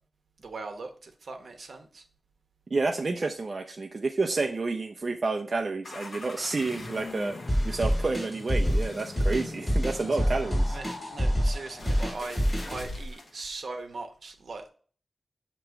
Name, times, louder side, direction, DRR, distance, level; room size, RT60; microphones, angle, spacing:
voice 1, 0.4-2.0 10.1-10.3 10.7-14.7, right 3 dB, 70° right, 5 dB, 0.9 m, -40 dB
voice 2, 2.7-7.4 7.6-10.8, right 3 dB, 45° right, 3 dB, 0.5 m, -29 dB
sound 1, 5.8-13.4, left 2 dB, 55° left, 1.1 m, -42 dB
sound 2, 7.5-12.8, equal, 10° left, 2.9 m, -26 dB
7.5 x 3.0 x 4.5 m, 0.43 s
wide cardioid pair, 110°, 0 cm